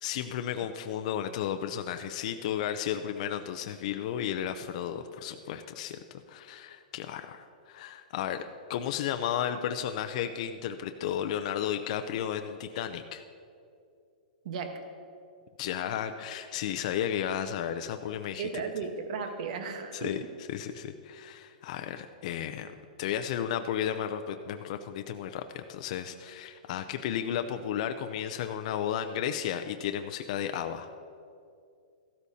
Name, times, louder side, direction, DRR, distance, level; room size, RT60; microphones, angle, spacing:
voice 1, 0.0-6.0 6.3-8.4 8.7-13.2 15.6-18.6 19.9-30.9, left 9 dB, 55° left, 7 dB, 0.5 m, -33 dB
voice 2, 14.4-14.8 18.4-20.1, right 5 dB, 60° right, 7 dB, 1.1 m, -35 dB
14.5 x 13.0 x 2.8 m, 2.4 s
hypercardioid pair, 140°, 5 cm